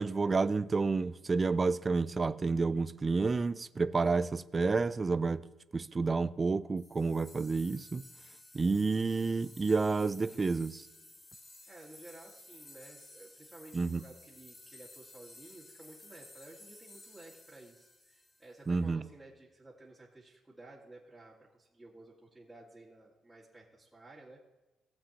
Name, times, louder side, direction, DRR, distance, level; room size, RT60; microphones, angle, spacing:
voice 1, 0.0-5.4 5.7-8.0 8.5-10.9 13.7-14.0 18.7-19.0, right 4 dB, 30° right, 0.5 m, -30 dB
sound 1, 6.8-18.8, left 2 dB, 30° left, 3.3 m, -55 dB
voice 2, 11.7-24.4, right 2 dB, 10° right, 1.9 m, -54 dB
18.0 x 7.5 x 2.9 m
cardioid pair, 90°, 0 cm